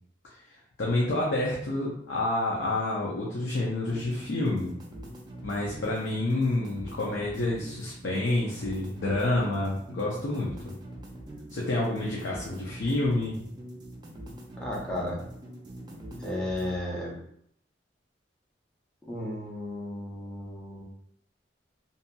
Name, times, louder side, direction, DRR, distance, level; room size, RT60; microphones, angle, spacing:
voice 1, 0.8-4.7 5.4-10.7 11.5-13.4, left 2 dB, 75° left, -4 dB, 0.5 m, -28 dB
sound 1, 3.9-16.8, right 1 dB, 25° right, 0.4 m, -43 dB
voice 2, 14.6-15.2 16.2-17.1 19.0-20.8, left 1 dB, 5° left, -5 dB, 0.7 m, -34 dB
2.7 x 2.6 x 2.2 m, 0.70 s
head